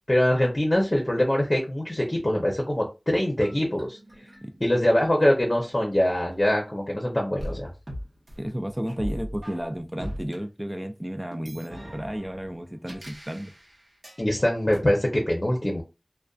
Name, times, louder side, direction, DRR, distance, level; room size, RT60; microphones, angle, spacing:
voice 1, 0.1-4.0 4.6-7.7 14.2-15.8, left 1 dB, 40° left, 0.6 m, -23 dB
sound 1, 3.4-6.9 7.4-10.4 11.3-14.2 14.7-14.8, equal, 75° right, 0.8 m, -40 dB
voice 2, 8.4-13.5, equal, 20° right, 0.3 m, -32 dB
2.5 x 2.2 x 2.3 m
wide cardioid pair, 45°, 0 cm